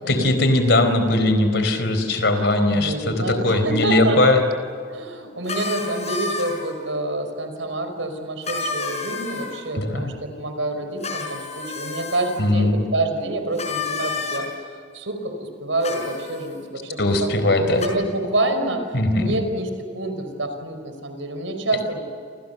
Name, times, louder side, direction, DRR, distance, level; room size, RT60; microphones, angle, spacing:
voice 1, 0.1-4.4 9.7-10.1 12.4-12.8 17.0-17.8 18.9-19.4, left 2 dB, 60° left, 8 dB, 4.3 m, -19 dB
voice 2, 2.7-4.2 4.9-14.5 14.9-17.3 17.6-18.8 19.1-22.0, right 2 dB, 80° right, 7 dB, 5.2 m, -27 dB
sound 1, 5.5-6.8 8.4-9.6 11.0-12.4 13.6-14.4 15.8-16.5 17.8-17.9, left 4 dB, 35° left, 5.4 m, -30 dB
29.5 x 28.0 x 6.9 m, 2.3 s
head